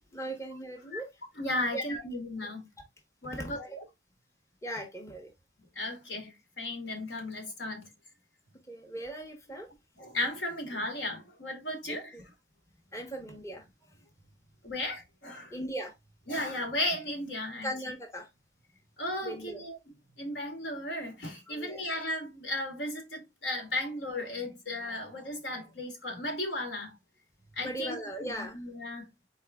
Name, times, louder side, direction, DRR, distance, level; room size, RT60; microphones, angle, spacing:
voice 1, 0.1-1.1 1.7-2.0 3.3-3.8 4.6-5.3 8.7-9.7 11.9-12.2 12.9-14.0 15.5-15.9 17.6-18.3 19.2-19.6 21.5-21.8 27.6-28.6, right 1 dB, 15° left, 1.0 m, -39 dB
voice 2, 1.4-2.7 3.2-3.9 5.7-7.9 10.0-12.2 14.6-15.5 16.3-17.7 19.0-19.8 20.2-27.0 27.5-29.1, left 1 dB, 70° left, 1.7 m, -35 dB
4.3 x 3.6 x 3.4 m
head